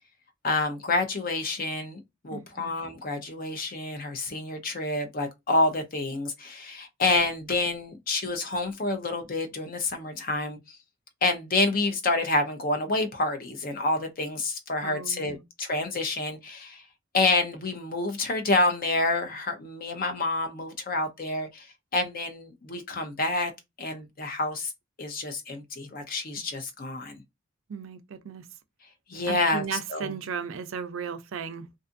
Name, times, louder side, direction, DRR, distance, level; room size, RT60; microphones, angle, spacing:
voice 1, 0.4-10.8 11.2-16.8 17.1-21.7 21.9-23.5 23.8-24.7 25.0-27.2 29.1-29.6 29.9-30.1, left 2 dB, 45° left, 0.6 m, -28 dB
voice 2, 2.3-2.7 14.8-15.4 27.7-28.5 29.3-31.7, right 6 dB, 75° right, 0.4 m, -36 dB
2.5 x 2.5 x 2.5 m
head